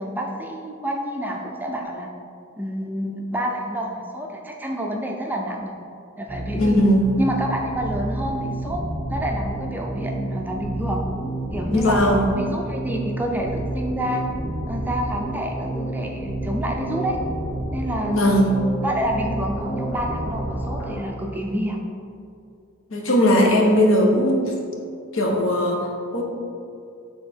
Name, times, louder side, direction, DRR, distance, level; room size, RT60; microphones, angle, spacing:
voice 1, 0.0-2.1 2.6-5.7 6.2-6.8 7.2-8.8 9.1-11.1 11.5-14.2 14.7-17.2 17.7-18.5 18.8-21.8, equal, 10° right, 0 dB, 0.4 m, -28 dB
sound 1, 6.3-20.9, right 1 dB, 10° left, 1.3 m, -30 dB
voice 2, 6.5-7.1 11.7-12.3 18.1-18.6 22.9-24.5 25.1-26.2, equal, 70° left, 1 dB, 0.9 m, -19 dB
6.5 x 3.6 x 4.3 m, 2.5 s
head